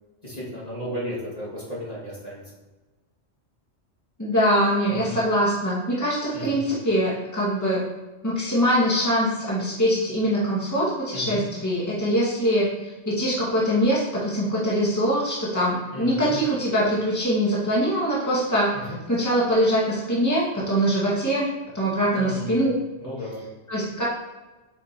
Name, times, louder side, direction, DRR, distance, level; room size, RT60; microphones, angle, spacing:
voice 1, 0.2-2.4 4.9-5.2 6.3-6.6 11.1-11.5 15.9-16.3 18.7-19.0 22.1-22.7 23.0-23.4, equal, 35° left, -6 dB, 2.3 m, -34 dB
voice 2, 4.2-7.8 8.2-21.5 21.7-22.7 23.7-24.0, equal, 15° left, -7 dB, 2.0 m, -23 dB
7.4 x 7.1 x 3.0 m, 1.2 s
omnidirectional pair, 1.2 m